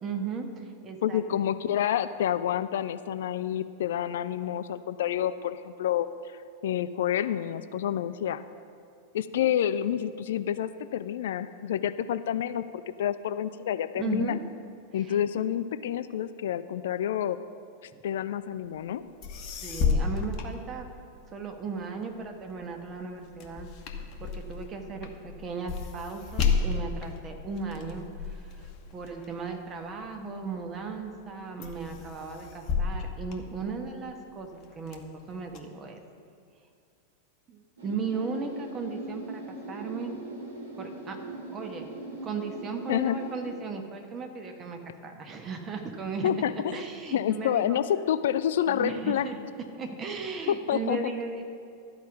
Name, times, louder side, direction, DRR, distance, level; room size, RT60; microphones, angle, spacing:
voice 1, 0.0-1.2 13.9-14.4 15.0-15.2 17.9-18.0 19.6-20.9 21.3-23.7 24.2-35.0 35.3-36.0 37.5-40.2 40.8-41.2 41.5-41.9 42.2-47.8 48.7-49.4 49.7-51.4, right 4 dB, 25° right, 4 dB, 1.2 m, -36 dB
voice 2, 1.0-6.1 6.6-8.4 9.1-14.4 14.9-17.4 18.0-19.0 42.9-43.2 46.2-46.8 47.1-49.3 50.5-51.0, left 10 dB, 60° left, 13 dB, 0.3 m, -28 dB
sound 1, 18.9-19.0 19.2-21.3 21.8-30.4 30.9-31.3 31.6-34.1 34.6-35.6, left 5 dB, 40° left, 1.0 m, -32 dB
sound 2, 37.8-43.5, right 2 dB, 65° right, 1.9 m, -41 dB
12.5 x 5.2 x 7.0 m, 2.4 s
figure-of-eight pair, 90°, 0 cm